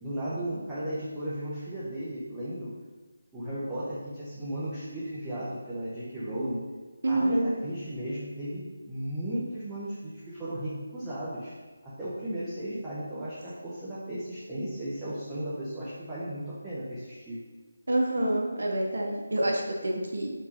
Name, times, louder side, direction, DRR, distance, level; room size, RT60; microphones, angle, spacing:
voice 1, 0.0-2.7 3.3-6.6 7.1-11.5 11.8-17.4, right 1 dB, 10° right, -13 dB, 0.8 m, -35 dB
voice 2, 7.0-7.5 17.9-20.3, right 1 dB, 65° right, 0 dB, 0.8 m, -27 dB
6.3 x 2.7 x 2.9 m, 1.3 s
figure-of-eight pair, 160°, 0 cm